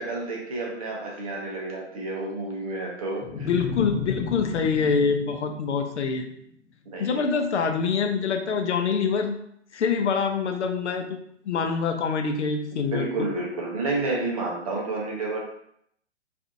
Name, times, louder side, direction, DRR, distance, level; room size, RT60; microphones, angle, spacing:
voice 1, 0.0-3.5 6.9-7.4 12.9-15.4, right 2 dB, 30° right, -1 dB, 0.5 m, -30 dB
sound 1, 3.2-6.5, left 6 dB, 25° left, 0.6 m, -35 dB
voice 2, 3.4-6.3 7.0-9.4 9.7-11.2 11.4-13.1, left 5 dB, 70° left, 5 dB, 0.5 m, -25 dB
2.5 x 2.4 x 2.4 m, 0.71 s
figure-of-eight pair, 125°, 36 cm